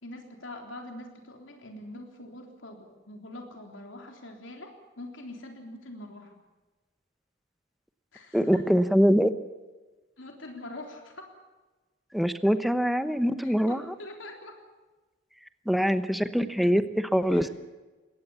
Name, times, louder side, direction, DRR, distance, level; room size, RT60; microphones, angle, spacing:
voice 1, 0.0-6.4 8.1-8.6 10.2-11.3 13.4-14.6 17.3-17.5, left 1 dB, 75° left, 3 dB, 3.7 m, -44 dB
voice 2, 8.3-9.3 12.1-13.8 15.7-17.5, equal, ahead, 10 dB, 1.0 m, -23 dB
22.0 x 18.0 x 7.1 m, 1.2 s
head